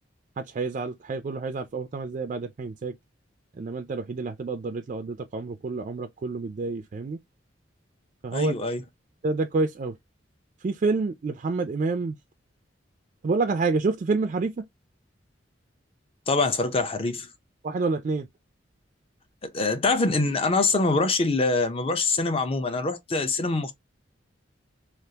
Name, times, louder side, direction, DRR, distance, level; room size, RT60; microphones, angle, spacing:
voice 1, 0.4-2.9 3.6-7.2 8.2-8.5 9.2-10.0 10.6-12.1 13.2-14.6 17.6-18.3, right 3 dB, 40° right, 0.3 m, -28 dB
voice 2, 8.3-8.8 16.3-17.3 19.5-23.7, left 3 dB, 30° left, 0.6 m, -24 dB
3.4 x 2.4 x 2.7 m
head